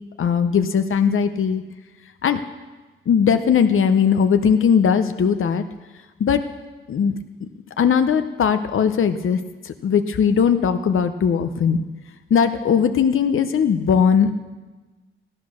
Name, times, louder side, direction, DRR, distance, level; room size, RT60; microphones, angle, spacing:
voice 1, 0.2-1.6 2.2-2.4 3.1-5.7 6.2-6.4 6.9-7.2 7.4-7.5 7.8-11.8 12.3-14.3, left 7 dB, 75° left, 9 dB, 0.7 m, -19 dB
16.0 x 11.5 x 6.3 m, 1.2 s
wide cardioid pair, 105°, 21 cm